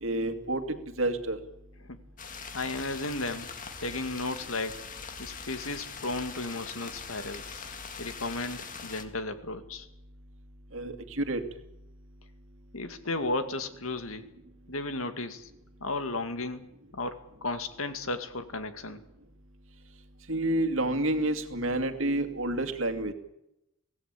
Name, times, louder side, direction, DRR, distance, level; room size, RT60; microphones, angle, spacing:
voice 1, 0.0-1.4 10.7-11.4 20.3-23.1, right 1 dB, 65° right, 8 dB, 2.4 m, -29 dB
sound 1, 2.2-9.0, left 5 dB, 40° left, 2.0 m, -42 dB
voice 2, 2.5-3.5 3.8-4.8 5.2-7.6 8.0-9.9 12.7-14.3 14.7-15.5 15.8-16.7 16.9-19.0, left 2 dB, 80° left, 9 dB, 2.2 m, -34 dB
24.5 x 17.0 x 8.5 m, 0.85 s
head